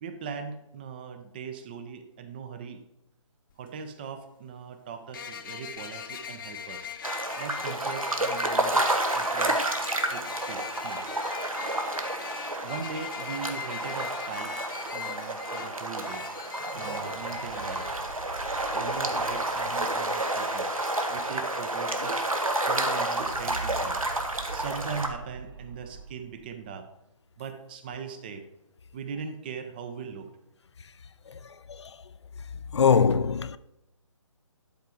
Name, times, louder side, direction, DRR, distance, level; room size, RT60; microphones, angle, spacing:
voice 1, 0.0-2.8 3.6-6.9 7.4-9.7 10.1-11.0 12.6-14.6 14.9-16.3 16.7-17.9 18.7-20.7 21.1-22.2 22.7-24.0 24.5-26.9 27.4-28.5 28.9-30.3, right 6 dB, 20° right, 0.5 m, -40 dB
sound 1, 3.5-3.6 5.1-17.9, left 8 dB, 40° left, 0.9 m, -41 dB
sound 2, 7.0-25.1, right 1 dB, 90° right, 1.6 m, -30 dB
sound 3, 16.6-21.8 22.0-22.1 22.4-26.8, right 4 dB, 45° right, 0.8 m, -44 dB
voice 2, 31.3-32.0 32.7-33.6, left 6 dB, 55° left, 0.5 m, -24 dB
11.5 x 4.4 x 4.8 m
figure-of-eight pair, 145°, 17 cm